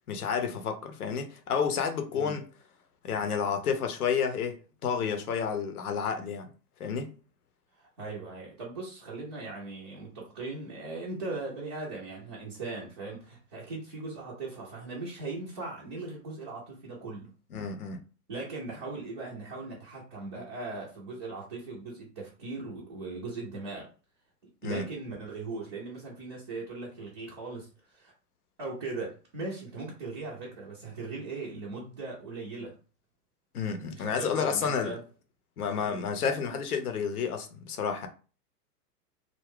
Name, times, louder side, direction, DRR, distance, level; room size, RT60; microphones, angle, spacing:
voice 1, 0.1-2.4 3.0-6.5 6.8-7.1 17.5-18.0 24.6-24.9 33.5-34.9 35.6-38.1, left 6 dB, 65° left, 0.7 m, -30 dB
voice 2, 7.8-17.3 18.3-23.9 24.6-28.1 28.6-32.8 33.9-35.0 35.8-36.1, right 3 dB, 20° right, 0.4 m, -39 dB
2.4 x 2.1 x 3.5 m
figure-of-eight pair, 105°, 48 cm